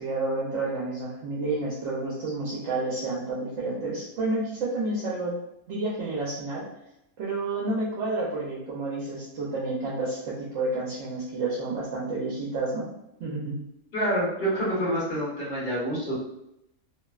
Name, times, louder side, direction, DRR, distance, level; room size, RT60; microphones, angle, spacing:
voice 1, 0.0-5.3 5.7-6.6 7.2-12.9 13.2-13.6, right 2 dB, 70° right, -5 dB, 0.9 m, -30 dB
voice 2, 13.9-16.1, equal, 50° left, -7 dB, 1.2 m, -27 dB
2.7 x 2.0 x 2.3 m, 0.83 s
omnidirectional pair, 1.3 m